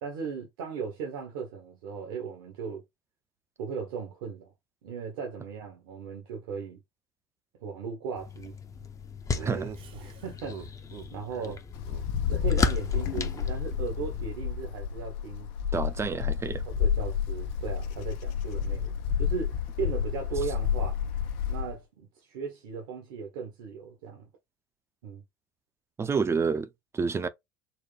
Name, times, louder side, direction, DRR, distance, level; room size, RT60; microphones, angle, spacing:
voice 1, 0.0-2.8 3.6-4.5 4.8-6.8 7.6-8.6 9.3-9.6 9.9-10.7 11.1-11.6 12.3-15.5 15.8-15.9 16.7-21.0 21.5-24.3 25.0-25.2, right 6 dB, 75° right, 1.2 m, -37 dB
sound 1, 8.2-14.3, left 4 dB, 25° left, 0.7 m, -35 dB
Laughter, 9.3-11.1 11.4-11.6 11.8-12.0 12.3-13.9, right 7 dB, 45° right, 0.9 m, -44 dB
Wind, 11.7-21.7, left 8 dB, 70° left, 0.7 m, -30 dB
voice 2, 15.7-16.6 26.0-26.7 26.9-27.3, right 5 dB, 20° right, 0.5 m, -28 dB
4.7 x 2.2 x 3.3 m
hypercardioid pair, 80°, 12 cm